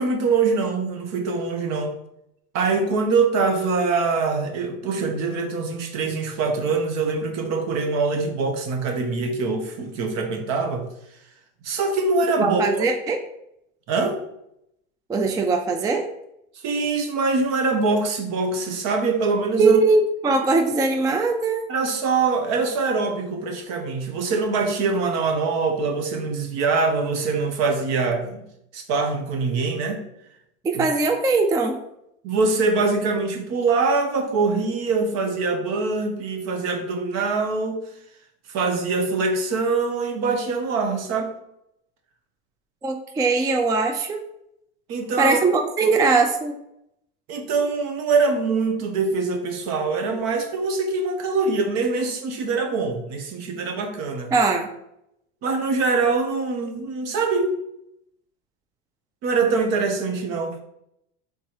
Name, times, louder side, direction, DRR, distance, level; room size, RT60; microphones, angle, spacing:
voice 1, 0.0-1.9 2.5-10.9 11.6-12.9 13.9-14.2 16.6-19.8 21.7-28.4 28.7-30.0 30.7-30.8 32.2-37.8 38.5-41.3 44.9-45.4 47.3-54.3 55.4-57.5 59.2-60.6, right 4 dB, 55° right, 5 dB, 1.0 m, -23 dB
voice 2, 12.4-13.2 15.1-16.0 19.6-21.7 30.6-31.8 42.8-44.2 45.2-46.5 54.3-54.7, right 3 dB, 10° right, 5 dB, 0.3 m, -20 dB
3.8 x 2.8 x 4.6 m, 0.79 s
supercardioid pair, 100°, 32 cm